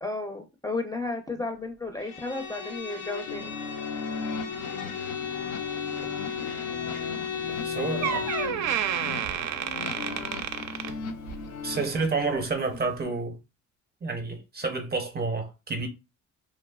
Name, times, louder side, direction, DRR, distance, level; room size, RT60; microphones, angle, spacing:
voice 1, 0.0-3.5, left 3 dB, 10° left, 0.5 m, -33 dB
Bowed string instrument, 2.0-8.7, left 6 dB, 75° left, 0.9 m, -35 dB
sound 1, 3.3-12.1, left 5 dB, 60° left, 0.5 m, -37 dB
Door, 7.5-7.7 8.0-11.5 11.9-12.1 12.9-13.0, right 9 dB, 70° right, 0.4 m, -30 dB
voice 2, 7.6-8.3 11.6-13.4 14.0-15.9, right 4 dB, 35° right, 0.7 m, -29 dB
3.0 x 2.0 x 2.3 m
cardioid pair, 90°, 30 cm